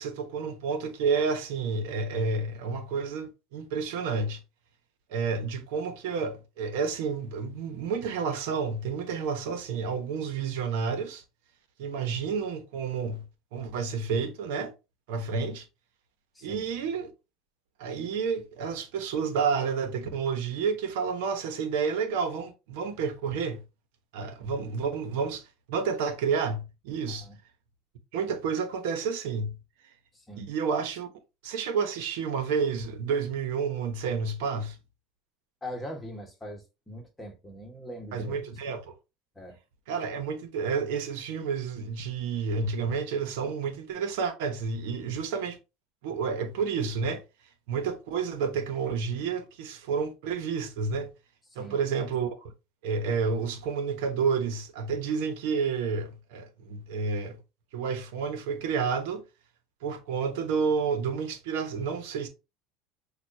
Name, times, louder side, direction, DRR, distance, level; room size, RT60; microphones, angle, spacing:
voice 1, 0.0-4.4 5.1-11.2 11.8-13.2 13.5-14.7 15.1-15.7 16.4-17.1 17.8-23.6 24.1-27.3 28.1-29.6 30.4-31.1 31.4-34.8 38.1-38.9 39.9-45.6 46.0-47.2 47.7-51.1 51.5-52.5 52.8-57.4 57.7-59.2 59.8-62.3, right 5 dB, 80° right, 1.0 m, -30 dB
voice 2, 30.1-30.5 35.6-38.4 39.3-39.6 51.5-51.8, equal, 10° left, 1.4 m, -41 dB
6.2 x 2.5 x 2.7 m
supercardioid pair, 105°, 0 cm